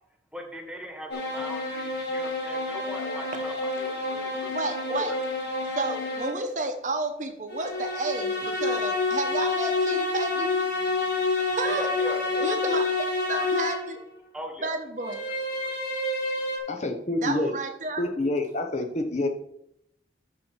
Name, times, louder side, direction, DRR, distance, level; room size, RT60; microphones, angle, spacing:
voice 1, 0.3-5.2 11.6-12.5 14.3-14.8 15.0-15.4 15.6-15.7, right 1 dB, 5° right, 2 dB, 1.4 m, -39 dB
sound 1, 1.1-6.5 7.5-14.0 15.0-16.6, left 3 dB, 75° left, 2.4 m, -28 dB
voice 2, 4.5-5.1 5.8-10.5 11.4-11.9 12.4-14.0 14.6-15.2 17.2-18.0, right 3 dB, 45° right, 6 dB, 0.9 m, -31 dB
voice 3, 16.7-17.5 18.0-19.3, left 2 dB, 40° left, 5 dB, 0.8 m, -27 dB
13.0 x 4.3 x 4.5 m, 0.77 s
head